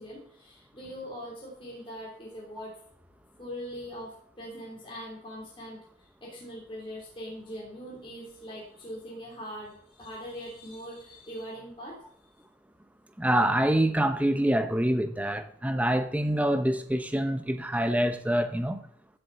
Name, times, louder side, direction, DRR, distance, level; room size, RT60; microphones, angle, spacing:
voice 1, 0.0-2.7 3.4-5.8 6.2-12.0, equal, 25° left, 3.2 m, -41 dB
voice 2, 13.2-18.8, right 1 dB, 10° right, 0.7 m, -26 dB
14.0 x 7.0 x 4.1 m
head